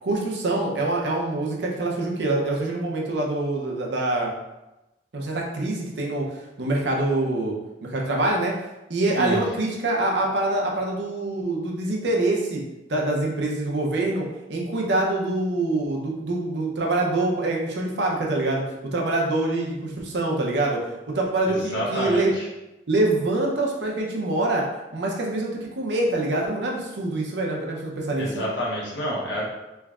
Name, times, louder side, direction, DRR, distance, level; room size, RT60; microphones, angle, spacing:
voice 1, 0.0-4.3 5.1-7.5 7.8-8.5 8.9-12.6 12.9-20.8 21.1-22.3 22.9-24.7 24.9-28.4, right 2 dB, 70° right, -1 dB, 0.7 m, -25 dB
voice 2, 21.5-22.4 28.2-29.5, equal, 85° left, -4 dB, 1.0 m, -28 dB
3.5 x 3.1 x 2.4 m, 0.99 s
head